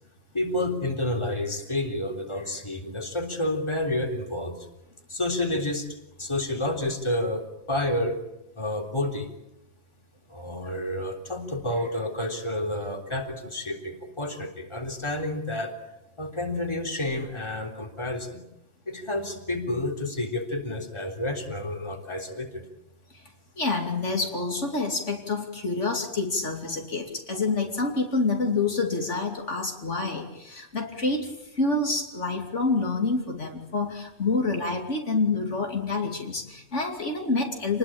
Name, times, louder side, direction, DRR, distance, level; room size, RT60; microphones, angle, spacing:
voice 1, 0.3-4.7 5.1-5.9 6.2-8.2 8.6-9.3 10.3-15.7 16.2-18.4 18.9-22.7, left 1 dB, 20° left, 3 dB, 3.6 m, -30 dB
voice 2, 23.6-37.8, left 3 dB, 65° left, 3 dB, 3.1 m, -27 dB
28.5 x 20.5 x 8.8 m, 0.91 s
omnidirectional pair, 1.3 m